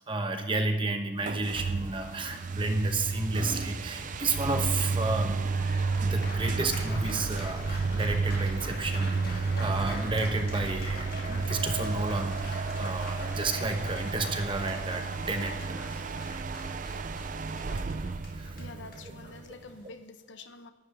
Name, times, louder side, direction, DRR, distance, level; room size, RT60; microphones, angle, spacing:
voice 1, 0.0-5.4 6.0-15.6 15.9-16.0 17.9-18.6, right 2 dB, 25° right, 5 dB, 1.1 m, -32 dB
sound 1, 1.2-19.7, right 4 dB, 45° right, 0.5 m, -32 dB
Fowl, 1.6-15.2, left 1 dB, 15° left, 2.3 m, -54 dB
Applause, 5.3-19.9, left 2 dB, 50° left, 1.8 m, -45 dB
voice 2, 18.6-20.7, left 3 dB, 70° left, 9 dB, 0.8 m, -47 dB
11.5 x 5.8 x 8.6 m, 1.3 s
head